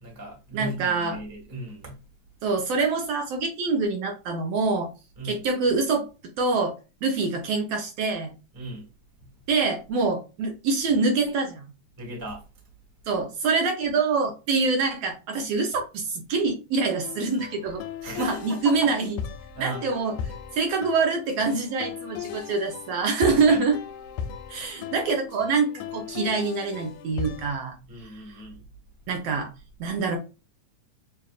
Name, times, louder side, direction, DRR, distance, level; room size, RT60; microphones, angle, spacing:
voice 1, 0.0-2.0 5.2-5.4 8.5-8.9 9.2-9.3 12.0-12.4 18.0-18.9 19.5-19.9 23.3-23.6 27.9-28.6, right 2 dB, 15° right, 0.7 m, -36 dB
voice 2, 0.5-1.2 2.4-4.9 5.2-6.1 6.4-6.7 7.0-8.3 9.5-11.7 13.1-17.8 18.2-19.2 19.6-20.1 20.5-23.7 24.5-27.8 28.0-28.4 29.1-29.5 29.8-30.2, right 4 dB, 70° right, 1.6 m, -25 dB
sound 1, 17.0-27.6, left 8 dB, 80° left, 2.1 m, -38 dB
6.8 x 2.4 x 2.4 m
omnidirectional pair, 3.7 m